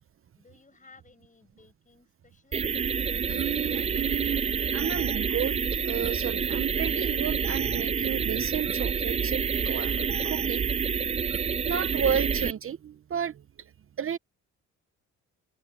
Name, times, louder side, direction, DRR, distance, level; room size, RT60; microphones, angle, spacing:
voice 1, 0.4-2.7, left 4 dB, 25° left, 7.7 m, -57 dB
sound 1, 2.5-12.5, right 6 dB, 20° right, 0.3 m, -28 dB
voice 2, 3.3-10.7 11.6-13.7 14.0-14.2, right 8 dB, 45° right, 0.8 m, -32 dB
open air
cardioid pair, 90°, 30 cm